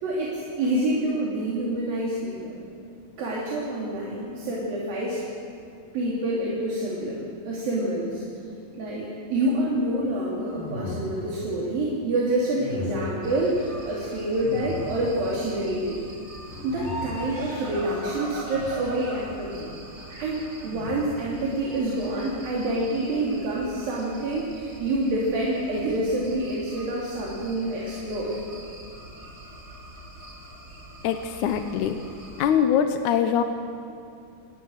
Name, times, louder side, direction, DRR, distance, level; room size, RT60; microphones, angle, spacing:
voice 1, 0.0-2.6 3.2-5.2 5.9-8.2 8.8-16.0 16.6-19.7 20.2-28.4, right 1 dB, 70° right, -5 dB, 4.8 m, -27 dB
sound 1, 10.5-11.5 12.6-13.3 14.4-15.3 16.4-17.4 18.5-19.1 20.6-21.4, left 3 dB, 85° left, 5.6 m, -37 dB
sound 2, 13.2-32.5, right 1 dB, 20° right, 3.5 m, -42 dB
voice 2, 31.0-32.0 32.4-33.4, left 8 dB, 70° left, 7 dB, 2.0 m, -23 dB
28.5 x 19.0 x 6.5 m, 2.4 s
omnidirectional pair, 4.2 m